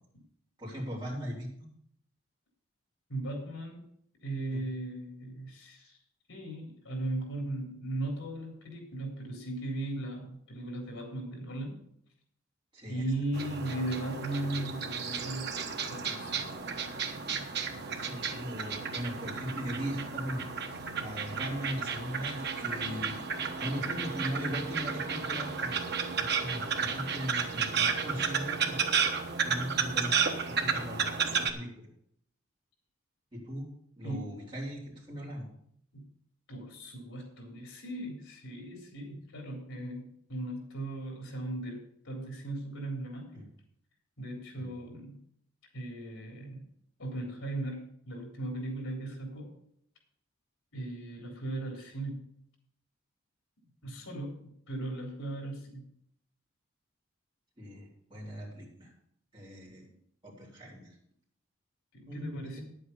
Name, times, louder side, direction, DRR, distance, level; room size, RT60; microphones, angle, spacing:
voice 1, 0.6-1.5 4.5-4.6 12.7-13.0 17.7-20.4 21.0-25.8 26.2-28.9 29.4-30.1 30.5-31.9 33.3-33.7 34.0-35.4 43.3-43.4 44.5-44.7 53.8-53.9 57.6-58.9 59.3-59.9 60.2-60.9 62.1-62.6, equal, 25° right, -6 dB, 4.1 m, -39 dB
voice 2, 3.1-3.9 4.2-6.0 6.3-11.8 12.9-15.5 15.9-16.6 34.0-34.4 35.9-36.1 36.5-43.5 44.2-45.2 45.7-46.7 47.0-49.5 50.7-52.3 53.8-55.9 61.9-62.6, right 1 dB, 75° left, 2 dB, 3.7 m, -37 dB
sound 1, 13.3-31.5, right 6 dB, 50° right, 1.1 m, -33 dB
10.0 x 8.0 x 6.9 m, 0.68 s
head